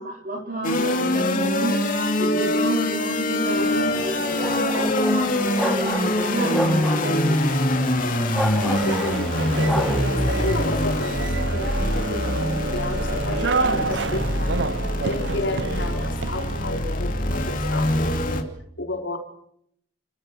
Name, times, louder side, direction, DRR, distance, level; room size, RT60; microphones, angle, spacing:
voice 1, 0.0-1.7 2.2-7.4 9.2-9.3, right 1 dB, 50° right, -1 dB, 4.7 m, -30 dB
sound 1, 0.6-18.4, left 1 dB, 50° left, 2.8 m, -24 dB
sound 2, 3.6-10.0, equal, ahead, 1.1 m, -31 dB
sound 3, 8.5-16.8, right 4 dB, 80° right, 0.8 m, -29 dB
voice 2, 8.6-12.2 12.7-14.5 15.0-18.5 18.8-19.2, left 2 dB, 85° left, 2 dB, 4.6 m, -31 dB
30.0 x 15.0 x 6.2 m, 0.71 s
head